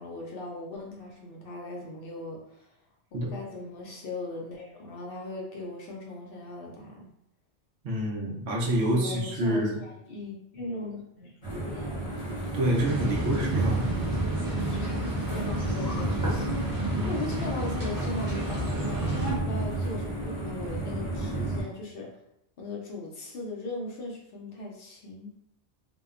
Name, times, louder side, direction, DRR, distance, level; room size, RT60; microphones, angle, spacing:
voice 1, 0.0-2.7 3.1-7.1 8.8-12.0 13.0-13.5 14.6-19.1 19.4-22.1 22.6-25.3, left 2 dB, 65° left, -2 dB, 0.7 m, -39 dB
voice 2, 7.8-9.7 12.5-13.9 16.9-17.2, right 1 dB, 75° right, -2 dB, 0.9 m, -27 dB
sound 1, 11.4-21.6, right 2 dB, 30° left, 0.8 m, -32 dB
sound 2, 12.7-19.3, right 1 dB, 20° right, 0.6 m, -32 dB
2.7 x 2.0 x 2.4 m, 0.80 s
omnidirectional pair, 1.1 m